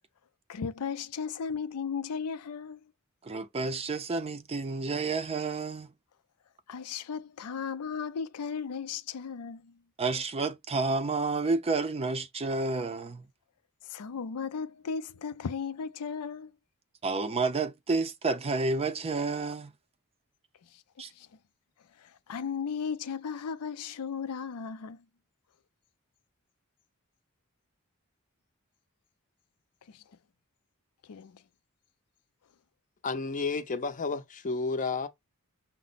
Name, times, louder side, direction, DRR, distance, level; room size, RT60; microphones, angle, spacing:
voice 1, 0.5-2.8 6.7-9.8 13.8-16.5 20.7-20.8 21.2-21.3 22.0-25.0 29.9-30.0 31.1-31.4, left 6 dB, 85° left, 0.5 m, -36 dB
voice 2, 3.2-5.9 10.0-13.3 17.0-19.7 21.0-21.1, right 3 dB, 25° right, 0.5 m, -30 dB
voice 3, 33.0-35.1, left 4 dB, 35° left, 0.6 m, -31 dB
5.9 x 2.1 x 3.9 m
head